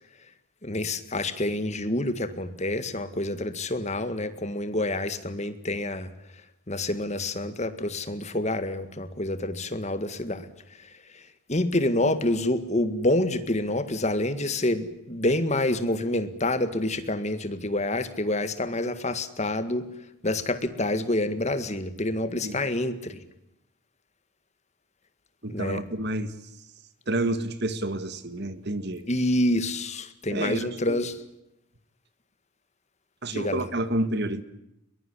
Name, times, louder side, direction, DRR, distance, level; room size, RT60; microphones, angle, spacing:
voice 1, 0.6-6.1 6.7-10.5 11.5-19.8 20.2-23.2 25.5-25.8 29.1-31.2 33.3-33.6, left 1 dB, 30° left, 11 dB, 1.9 m, -27 dB
voice 2, 22.4-22.7 25.4-26.3 27.1-29.0 30.3-31.0 33.2-34.4, right 1 dB, 50° right, 12 dB, 1.8 m, -29 dB
22.5 x 21.0 x 9.9 m, 0.84 s
head